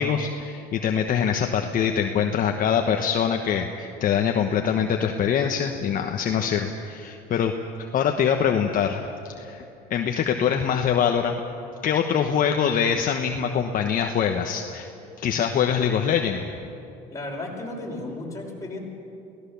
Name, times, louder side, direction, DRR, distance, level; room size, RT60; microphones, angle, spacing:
voice 1, 0.0-7.5 7.8-9.0 9.4-9.6 9.9-11.4 11.8-14.9 15.2-16.4, left 7 dB, 45° left, 4 dB, 1.2 m, -24 dB
voice 2, 17.1-18.8, left 2 dB, 15° left, -2 dB, 5.7 m, -34 dB
23.5 x 17.0 x 7.1 m, 2.8 s
supercardioid pair, 100°, 19 cm